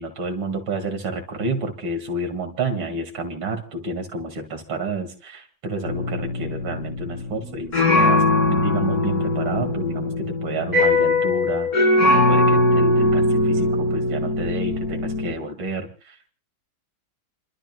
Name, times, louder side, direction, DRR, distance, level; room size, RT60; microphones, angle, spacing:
voice 1, 0.0-16.3, right 2 dB, 85° right, 5 dB, 2.9 m, -30 dB
sound 1, 5.9-15.3, left 2 dB, 50° left, 3.1 m, -20 dB
30.0 x 12.5 x 2.3 m, 0.33 s
omnidirectional pair, 2.1 m